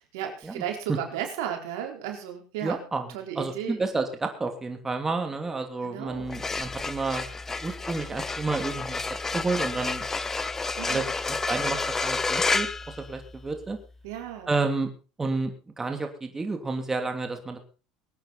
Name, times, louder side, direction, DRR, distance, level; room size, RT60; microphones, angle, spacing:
voice 1, 0.1-2.8 3.1-3.8 5.8-6.3 10.8-11.1 14.0-14.5, right 9 dB, 85° right, 3 dB, 4.2 m, -34 dB
voice 2, 2.6-3.1 3.4-7.3 7.6-9.0 9.3-10.0 10.8-13.8 14.5-14.9 15.2-17.6, right 3 dB, 20° right, 5 dB, 2.8 m, -30 dB
sound 1, 6.2-13.6, left 3 dB, 20° left, 1.1 m, -30 dB
23.0 x 9.2 x 4.2 m, 0.33 s
supercardioid pair, 105°, 2 cm